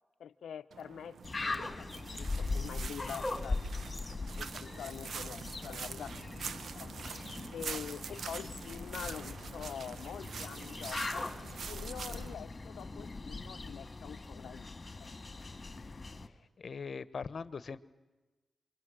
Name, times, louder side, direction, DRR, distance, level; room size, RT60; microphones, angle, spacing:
voice 1, 0.2-1.9 2.1-3.6 4.3-6.2 6.7-6.9 7.5-11.3 11.7-14.7 14.9-15.1, left 8 dB, 85° left, 13 dB, 0.7 m, -45 dB
sound 1, 0.7-12.3, right 6 dB, 75° right, 1.1 m, -45 dB
sound 2, 1.2-16.3, left 3 dB, 35° left, 2.4 m, -40 dB
voice 2, 15.8-17.8, left 5 dB, 65° left, 15 dB, 1.1 m, -43 dB
27.5 x 23.5 x 6.4 m, 1.2 s
cardioid pair, 50°, 0 cm